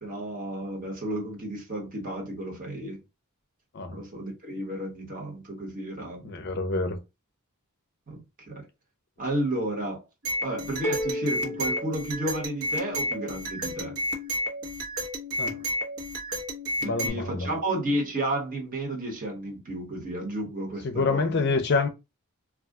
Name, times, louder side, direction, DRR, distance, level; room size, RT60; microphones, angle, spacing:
voice 1, 0.0-3.0 3.9-6.4 8.1-8.2 8.5-8.7 9.2-10.0 10.4-14.0 16.8-21.4, right 1 dB, 40° right, 1.1 m, -32 dB
voice 2, 6.2-7.0 15.4-15.6 16.8-17.5 20.8-21.9, left 3 dB, 50° left, 0.5 m, -27 dB
sound 1, 10.2-17.1, equal, 75° right, 1.0 m, -31 dB
sound 2, 10.8-12.8, equal, 10° left, 0.8 m, -33 dB
2.4 x 2.2 x 3.5 m
head